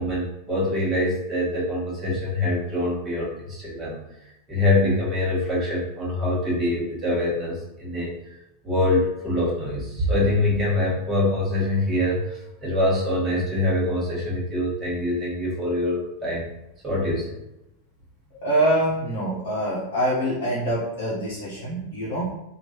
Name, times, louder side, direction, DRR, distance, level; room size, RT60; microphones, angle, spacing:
voice 1, 0.0-4.0 4.5-8.1 8.6-16.5 16.8-17.3, left 1 dB, 20° right, -6 dB, 1.4 m, -24 dB
voice 2, 18.4-22.3, right 1 dB, 55° left, -6 dB, 0.9 m, -25 dB
3.0 x 2.5 x 2.8 m, 0.89 s
figure-of-eight pair, 90°, 0 cm